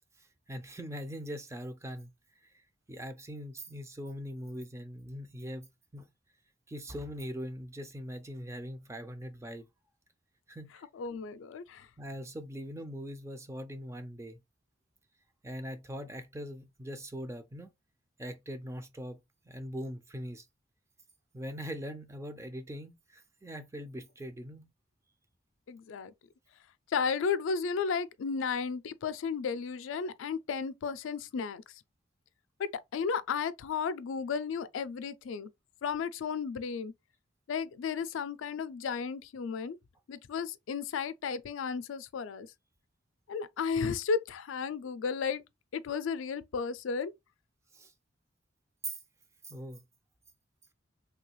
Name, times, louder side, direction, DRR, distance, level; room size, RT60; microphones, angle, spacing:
voice 1, 0.2-2.1 2.4-2.6 2.9-6.1 6.7-9.7 10.5-10.9 12.0-14.4 15.4-17.7 18.2-19.2 19.5-20.5 21.3-24.7 47.7-47.9 48.8-49.0 49.4-49.8, equal, 15° right, 0.4 m, -41 dB
voice 2, 11.0-11.9 25.7-26.1 26.9-31.6 32.6-35.5 35.8-36.9 37.5-39.8 40.1-42.5 43.3-45.4 45.7-47.1, left 6 dB, 85° left, 0.4 m, -33 dB
3.2 x 2.3 x 3.0 m
head